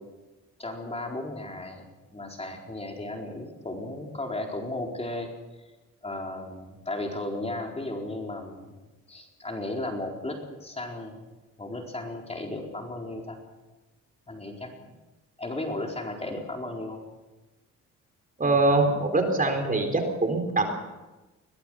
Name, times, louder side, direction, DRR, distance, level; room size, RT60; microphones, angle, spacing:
voice 1, 0.6-1.9 2.1-5.3 6.0-8.7 9.1-11.2 11.6-13.4 14.3-14.7 15.4-17.0, left 2 dB, 20° left, 1 dB, 4.3 m, -35 dB
voice 2, 18.4-20.7, right 2 dB, 25° right, 4 dB, 4.0 m, -23 dB
22.5 x 18.0 x 6.4 m, 1.1 s
cardioid pair, 90°, 30 cm